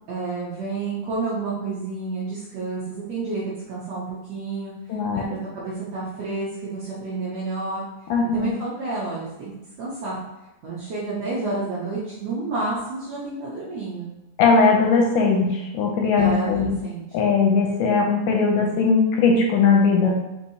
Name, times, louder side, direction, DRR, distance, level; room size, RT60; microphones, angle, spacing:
voice 1, 0.1-2.8 3.1-4.7 5.1-7.9 8.3-10.1 10.6-14.1 16.2-17.0, right 3 dB, 70° right, -8 dB, 1.6 m, -30 dB
voice 2, 4.9-5.2 8.1-8.5 14.4-16.8 17.1-20.1, left 4 dB, 80° left, 0 dB, 1.9 m, -19 dB
6.3 x 2.9 x 2.7 m, 0.98 s
omnidirectional pair, 4.0 m